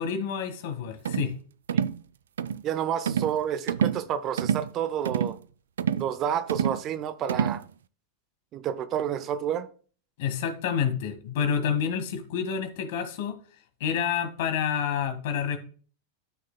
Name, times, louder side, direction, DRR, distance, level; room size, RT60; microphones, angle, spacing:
voice 1, 0.0-1.3 10.2-13.3 13.8-15.6, left 7 dB, 50° left, 8 dB, 1.5 m, -28 dB
sound 1, 1.0-1.3 1.7-2.0 2.4-2.6 3.1-3.4 3.7-4.0 4.4-4.7 5.0-5.4 5.8-6.1 6.5-6.8 7.3-7.6, right 8 dB, 65° right, 0.4 m, -27 dB
voice 2, 2.6-5.4 5.9-7.6 8.5-9.7, right 9 dB, 35° right, 12 dB, 0.7 m, -29 dB
12.5 x 6.3 x 2.2 m, 0.41 s
figure-of-eight pair, 90°, 0 cm